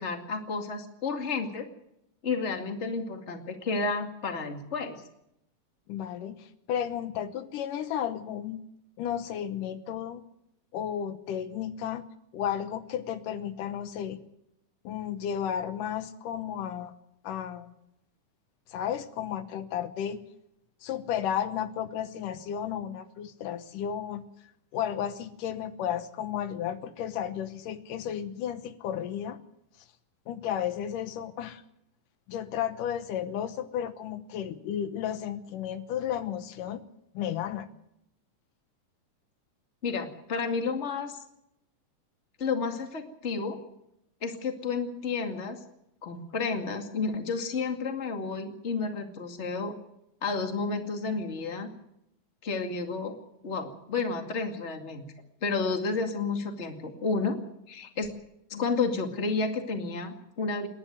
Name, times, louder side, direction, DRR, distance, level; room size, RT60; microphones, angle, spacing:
voice 1, 0.0-1.7 2.2-5.0 39.8-41.2 42.4-43.6 44.2-45.6 46.0-49.8 50.2-51.7 52.4-53.1 53.4-55.0 55.4-57.4 57.7-58.1 58.5-60.7, left 4 dB, 25° left, 5 dB, 2.1 m, -31 dB
voice 2, 5.9-8.6 9.0-10.2 10.7-12.0 12.3-14.2 14.8-16.9 17.2-17.8 18.7-20.2 20.8-24.3 24.7-29.4 30.3-31.6 32.3-36.8 37.1-37.7, left 9 dB, 80° left, 11 dB, 2.7 m, -33 dB
28.0 x 11.0 x 9.3 m, 0.80 s
omnidirectional pair, 3.7 m